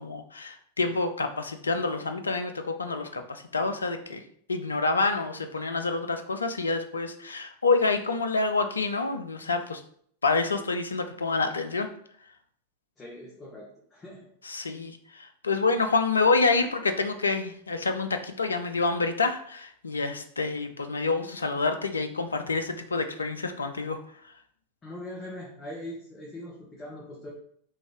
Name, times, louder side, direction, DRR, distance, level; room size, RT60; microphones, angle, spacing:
voice 1, 0.0-4.2 4.5-9.8 10.2-11.9 14.4-24.0, left 3 dB, 75° left, 7 dB, 0.4 m, -27 dB
voice 2, 13.0-14.3 24.8-27.3, left 1 dB, 20° left, -5 dB, 0.9 m, -41 dB
3.2 x 2.6 x 3.4 m, 0.63 s
figure-of-eight pair, 90°, 0 cm